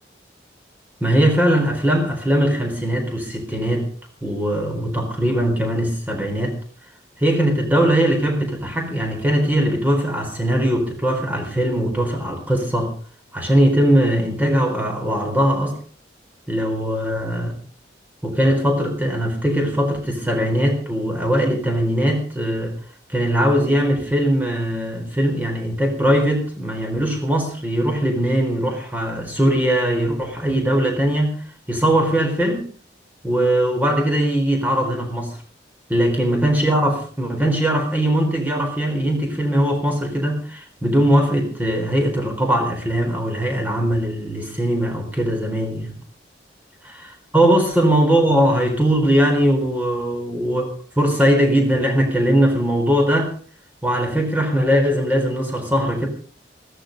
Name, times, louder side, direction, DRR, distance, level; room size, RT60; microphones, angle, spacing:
voice 1, 1.0-3.9 4.2-6.6 7.2-12.9 13.3-15.8 16.5-17.5 18.2-22.7 23.1-31.3 31.7-32.6 33.2-35.3 35.9-45.9 46.8-50.7 51.0-53.3 53.8-56.1, right 1 dB, 10° right, 3 dB, 4.0 m, -20 dB
16.0 x 14.0 x 5.2 m, 0.41 s
head